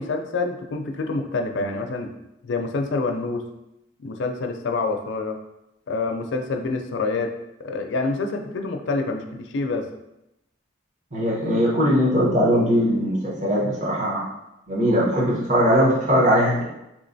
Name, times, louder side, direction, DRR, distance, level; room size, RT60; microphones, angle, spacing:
voice 1, 0.0-2.1 2.4-3.5 4.0-5.4 5.9-7.3 7.6-9.9, left 3 dB, 65° left, 5 dB, 0.4 m, -27 dB
voice 2, 11.1-14.3 14.7-16.6, equal, 35° right, -6 dB, 0.9 m, -20 dB
3.5 x 3.0 x 2.6 m, 0.88 s
head